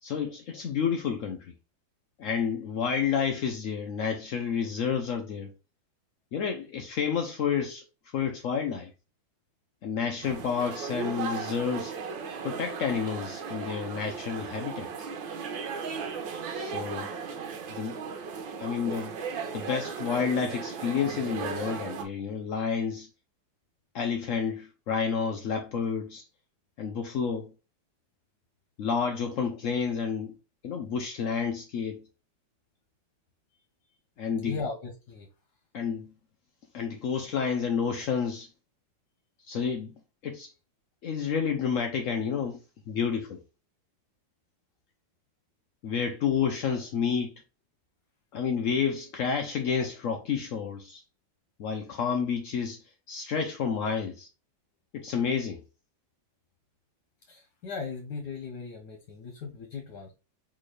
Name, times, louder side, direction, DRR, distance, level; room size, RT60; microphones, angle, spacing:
voice 1, 0.0-1.5 2.2-5.5 6.3-7.8 8.1-8.9 9.8-11.9 12.4-15.1 16.5-17.1 17.7-18.0 18.6-19.2 19.5-23.1 23.9-26.2 26.8-27.5 28.8-30.4 30.6-32.0 34.2-34.6 35.7-36.1 36.7-38.5 39.5-39.9 40.2-40.5 41.0-43.4 45.8-47.3 48.3-51.0 51.6-52.8 53.1-54.3 54.9-55.6, left 6 dB, 85° left, 0.7 m, -30 dB
sound 1, 10.2-22.0, right 5 dB, 80° right, 1.5 m, -36 dB
voice 2, 34.3-35.3 57.3-60.1, left 4 dB, 65° left, 1.4 m, -38 dB
4.3 x 3.4 x 3.2 m
omnidirectional pair, 2.1 m